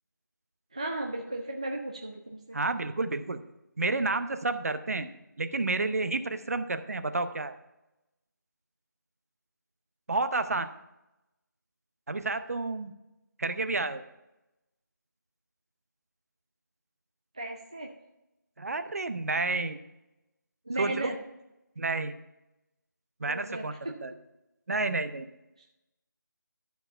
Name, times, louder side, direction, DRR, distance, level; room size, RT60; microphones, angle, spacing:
voice 1, 0.7-2.6 17.4-17.9 20.7-21.2 23.2-23.9, right 2 dB, 20° right, 2 dB, 0.4 m, -35 dB
voice 2, 2.5-3.4 3.8-5.1 5.4-7.5 10.1-10.7 12.1-12.9 13.4-14.0 18.6-19.8 20.8-21.1 21.8-22.1 23.2-24.1 24.7-25.3, right 3 dB, 50° right, 9 dB, 0.7 m, -30 dB
12.5 x 4.6 x 5.5 m, 0.93 s
figure-of-eight pair, 175°, 11 cm